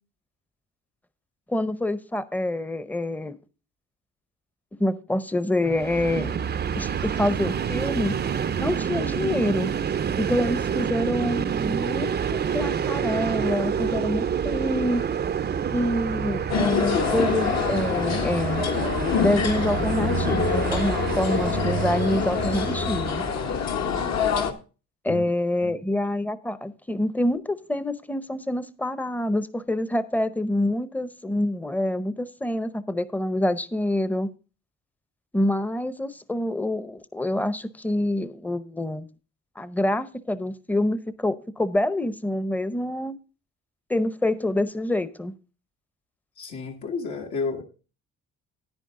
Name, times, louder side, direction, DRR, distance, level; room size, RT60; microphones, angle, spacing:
voice 1, 1.5-3.4 4.8-6.4 6.7-8.2 8.6-9.7 10.2-15.0 15.7-18.7 19.2-23.2 25.0-34.3 35.3-39.1 39.6-43.2 43.9-45.3, left 1 dB, 5° left, 0.7 m, -26 dB
Train, 5.7-23.8, right 7 dB, 35° right, 0.5 m, -28 dB
sound 1, 16.5-24.5, left 6 dB, 60° left, 1.3 m, -26 dB
voice 2, 46.4-47.6, left 4 dB, 75° left, 2.0 m, -31 dB
9.9 x 9.6 x 3.7 m
cardioid pair, 90°, 30 cm